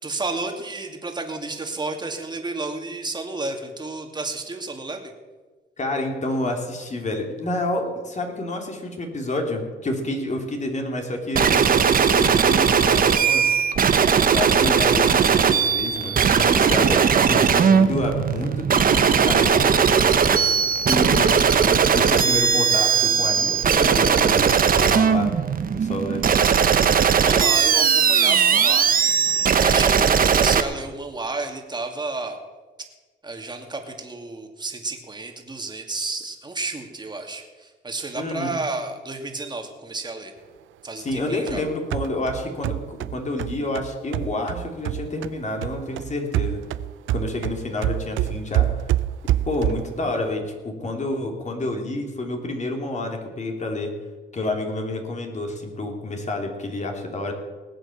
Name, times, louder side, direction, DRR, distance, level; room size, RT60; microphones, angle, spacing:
voice 1, 0.0-5.1 26.7-28.9 29.5-32.4 33.2-40.3 40.8-41.6, right 3 dB, 20° right, 4 dB, 2.4 m, -31 dB
voice 2, 5.8-20.4 20.9-25.3 25.7-26.4 38.1-38.5 41.0-46.6 47.1-48.7 49.4-53.9 54.3-57.3, left 2 dB, 35° left, 3 dB, 3.0 m, -29 dB
sound 1, 11.4-30.6, right 7 dB, 45° right, 1.1 m, -18 dB
sound 2, 41.1-45.4 45.6-50.0, right 14 dB, 75° right, 0.5 m, -27 dB
19.0 x 7.9 x 7.2 m, 1.3 s
cardioid pair, 90°, 20 cm